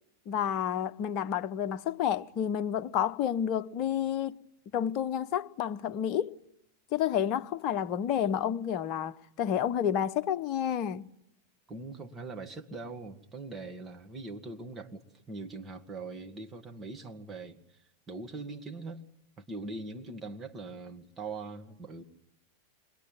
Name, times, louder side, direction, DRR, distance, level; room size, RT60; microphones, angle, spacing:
voice 1, 0.3-4.4 4.7-6.3 6.9-11.1, left 9 dB, 40° left, 1.0 m, -30 dB
voice 2, 11.7-17.6 18.1-19.0 19.4-22.0, right 3 dB, 20° right, 2.4 m, -41 dB
28.5 x 22.0 x 9.3 m
figure-of-eight pair, 90°, 0 cm